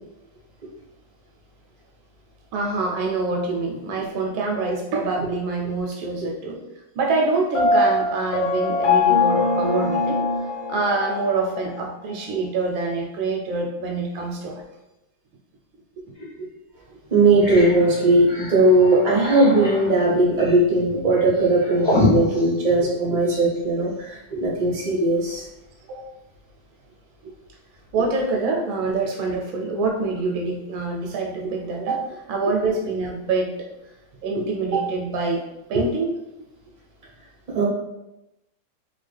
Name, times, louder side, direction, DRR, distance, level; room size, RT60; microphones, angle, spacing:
voice 1, 2.5-6.6 6.9-10.2 10.7-14.6 16.4-16.5 25.9-26.1 27.2-27.3 27.9-33.7 34.2-36.1, right 3 dB, 75° right, 0 dB, 1.3 m, -25 dB
Piano, 7.5-11.4, left 3 dB, 65° left, 1.5 m, -21 dB
sound 1, 16.2-16.3 16.8-16.9 17.2-23.6, left 1 dB, 40° left, 0.5 m, -28 dB
voice 2, 17.1-25.4 35.7-35.8 37.5-37.6, right 2 dB, 45° right, -5 dB, 0.5 m, -18 dB
3.5 x 2.3 x 3.2 m, 0.93 s
omnidirectional pair, 2.4 m